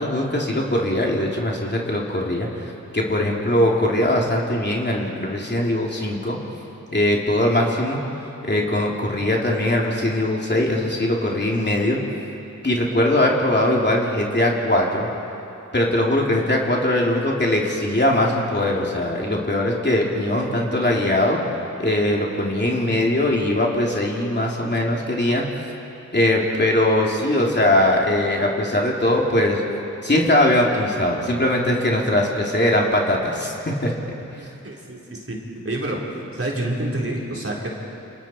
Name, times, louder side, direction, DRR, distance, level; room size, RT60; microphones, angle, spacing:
voice 1, 0.0-6.4 6.9-8.0 8.4-12.0 12.6-15.1 15.7-21.4 21.8-25.4 26.1-29.6 30.0-33.5 33.8-33.9, left 1 dB, 35° left, -2 dB, 3.1 m, -21 dB
voice 2, 34.3-35.4 35.6-36.0 36.3-37.7, right 1 dB, 45° right, -3 dB, 4.2 m, -28 dB
29.0 x 28.5 x 4.5 m, 2.9 s
wide cardioid pair, 85°, 31 cm